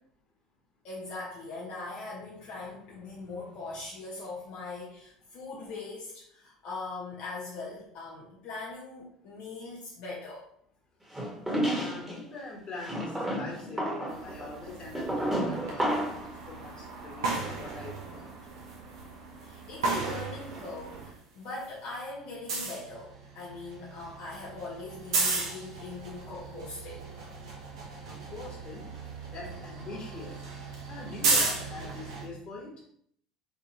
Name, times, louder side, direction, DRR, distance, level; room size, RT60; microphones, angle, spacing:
voice 1, 0.8-10.5 19.4-27.1, left 3 dB, 55° left, -6 dB, 0.9 m, -41 dB
sound 1, 11.1-12.1 12.8-16.3, right 1 dB, 10° right, 1.5 m, -31 dB
voice 2, 11.7-16.1 16.5-18.3 28.1-28.9 29.2-30.4 30.9-32.7, left 3 dB, 30° left, -1 dB, 1.4 m, -43 dB
sound 2, 14.1-21.1 21.4-32.3, right 3 dB, 75° right, 0.8 m, -35 dB
3.7 x 2.9 x 3.0 m, 0.67 s
figure-of-eight pair, 65°, 3 cm